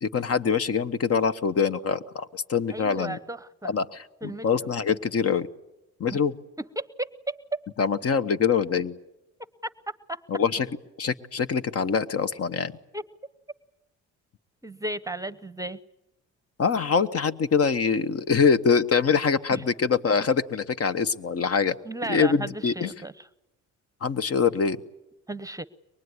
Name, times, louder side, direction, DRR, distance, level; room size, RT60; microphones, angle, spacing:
voice 1, 0.0-3.2 3.6-5.5 6.0-6.3 7.8-9.0 10.3-10.7 11.0-12.7 16.6-21.8 22.1-22.9 24.0-24.8, left 6 dB, 50° left, 13 dB, 1.2 m, -24 dB
voice 2, 2.7-3.8 4.2-4.7 6.1-6.2 6.6-7.4 9.9-10.2 12.9-13.0 14.6-15.8 19.5-19.6 21.8-23.3 25.3-25.7, right 2 dB, 10° right, 15 dB, 0.9 m, -35 dB
24.0 x 21.5 x 9.7 m, 0.91 s
cardioid pair, 90°, 30 cm